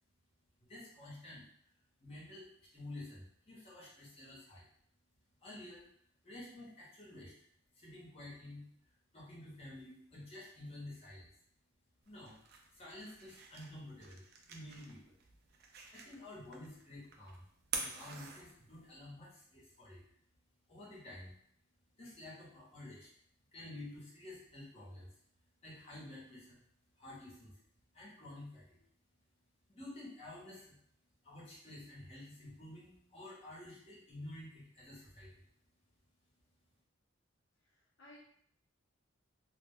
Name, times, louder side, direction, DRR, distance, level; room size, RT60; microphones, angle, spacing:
voice 1, 0.7-1.5 2.0-2.4 2.7-4.6 5.4-5.8 6.2-7.3 7.7-8.7 9.1-11.3 12.0-12.4 12.7-14.2 14.5-15.2 15.9-17.4 17.8-20.0 20.7-21.3 22.0-23.1 23.5-25.2 25.6-26.6 27.0-27.6 27.9-28.8 29.7-30.8 31.2-35.4, left 1 dB, 30° left, -7 dB, 0.9 m, -50 dB
sound 1, 12.0-19.0, right 5 dB, 55° right, 0.4 m, -47 dB
voice 2, 37.6-38.2, left 1 dB, 65° left, -6 dB, 0.7 m, -59 dB
2.2 x 2.1 x 3.5 m, 0.66 s
head